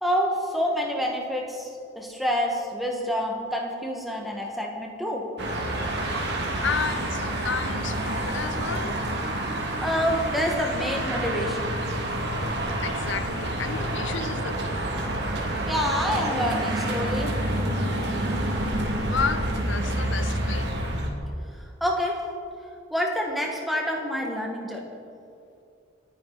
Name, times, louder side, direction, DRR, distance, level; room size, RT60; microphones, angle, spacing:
voice 1, 0.0-5.3 9.8-11.8 15.7-17.3 21.8-22.2 22.9-24.9, equal, ahead, 1.8 m, -27 dB
sound 1, 5.4-21.1, right 1 dB, 55° right, 2.3 m, -28 dB
voice 2, 6.3-9.0 12.8-14.8 19.1-20.7, left 5 dB, 70° left, 0.6 m, -32 dB
27.5 x 9.8 x 4.2 m
head